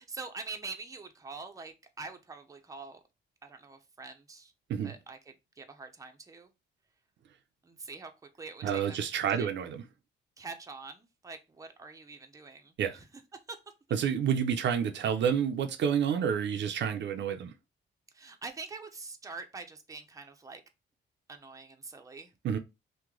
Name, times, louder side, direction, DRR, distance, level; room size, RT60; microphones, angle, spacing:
voice 1, 0.0-3.0 3.4-4.5 4.8-5.2 5.6-6.5 7.6-8.1 8.4-9.0 9.4-9.5 10.4-13.1 13.5-13.6 18.1-20.6 21.3-22.3, right 4 dB, 15° right, 0.6 m, -44 dB
voice 2, 8.6-9.8 12.8-13.0 13.9-17.5 22.4-22.6, right 8 dB, 65° right, 0.5 m, -29 dB
3.0 x 2.2 x 3.6 m
cardioid pair, 90°, 20 cm